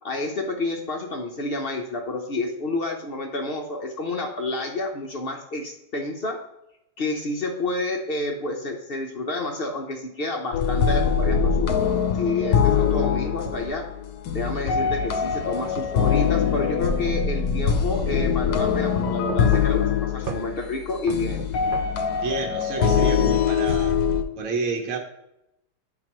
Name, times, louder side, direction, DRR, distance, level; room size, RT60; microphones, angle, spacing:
voice 1, 0.0-6.4 7.0-11.7 12.1-13.9 14.3-21.4, left 2 dB, 55° left, 2 dB, 0.6 m, -29 dB
sound 1, 10.5-24.2, left 7 dB, 70° left, 1.1 m, -23 dB
sound 2, 12.1-13.7 14.7-14.9 15.8-17.8 18.0-18.2 19.1-19.9 20.3-20.5 21.1-21.9, right 5 dB, 80° right, 0.4 m, -36 dB
voice 2, 22.2-24.0 24.3-25.0, right 4 dB, 50° right, 2 dB, 1.2 m, -29 dB
11.0 x 3.9 x 2.9 m, 0.83 s
omnidirectional pair, 1.9 m